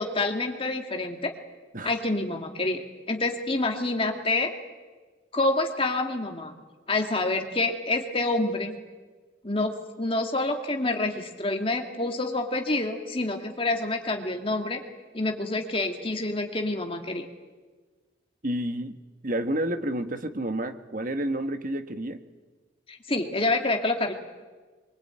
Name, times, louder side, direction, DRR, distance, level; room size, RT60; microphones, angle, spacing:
voice 1, 0.0-1.3 1.8-4.5 5.3-6.5 6.9-8.8 9.4-9.7 10.0-14.8 15.1-17.3 22.9-24.1, left 2 dB, 30° left, 4 dB, 2.3 m, -27 dB
voice 2, 18.4-19.0 19.2-22.2, right 1 dB, 45° right, 8 dB, 1.5 m, -30 dB
23.5 x 23.5 x 9.0 m, 1.3 s
head